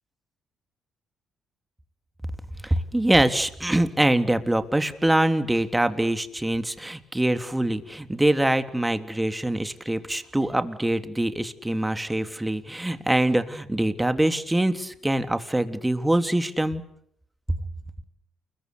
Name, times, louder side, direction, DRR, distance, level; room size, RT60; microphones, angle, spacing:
voice 1, 2.6-16.8 17.5-17.6, right 1 dB, 10° right, 9 dB, 3.3 m, -24 dB
29.0 x 22.5 x 8.3 m, 0.70 s
hypercardioid pair, 50°, 0 cm